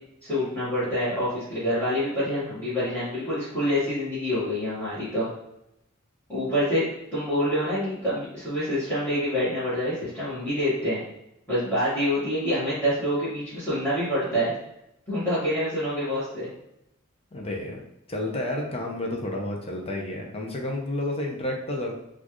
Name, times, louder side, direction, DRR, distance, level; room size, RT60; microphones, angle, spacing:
voice 1, 0.2-5.3 6.3-6.8 7.1-11.0 11.5-14.5 15.1-16.5, equal, 10° left, -14 dB, 1.3 m, -26 dB
voice 2, 17.3-17.8 18.1-22.0, left 1 dB, 30° left, 1 dB, 0.6 m, -30 dB
4.2 x 2.4 x 3.0 m, 0.84 s
head